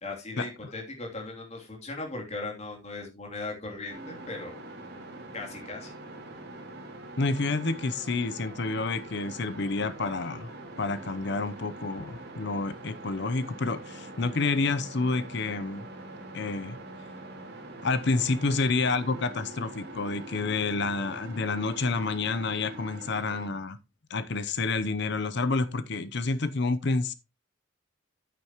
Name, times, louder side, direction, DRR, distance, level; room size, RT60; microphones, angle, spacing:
voice 1, 0.0-4.6 5.3-5.9, left 2 dB, 35° left, 3.1 m, -38 dB
sound 1, 3.9-23.5, right 2 dB, 55° right, 2.7 m, -44 dB
voice 2, 7.2-10.5 10.8-15.9 16.3-16.8 17.8-23.8 24.1-27.1, left 3 dB, 60° left, 0.7 m, -29 dB
10.5 x 9.2 x 3.0 m
head